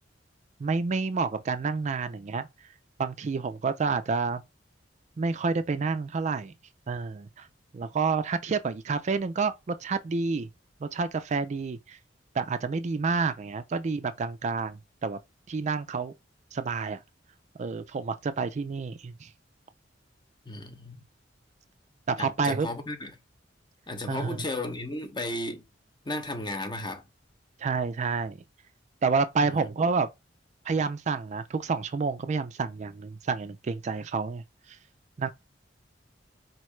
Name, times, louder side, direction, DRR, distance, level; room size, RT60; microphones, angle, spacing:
voice 1, 0.6-2.5 3.0-4.4 5.2-6.5 6.9-7.5 7.7-10.5 10.8-12.0 12.3-15.2 15.5-16.1 16.5-17.0 17.6-19.3 22.1-22.7 24.1-24.4 27.6-28.4 29.0-30.1 30.7-34.8 35.2-35.3, right 4 dB, 40° right, 0.4 m, -29 dB
voice 2, 20.5-21.0 22.2-23.1 23.9-25.6 26.0-27.0 29.4-29.7, left 2 dB, 25° left, 0.8 m, -34 dB
4.5 x 3.1 x 3.2 m
head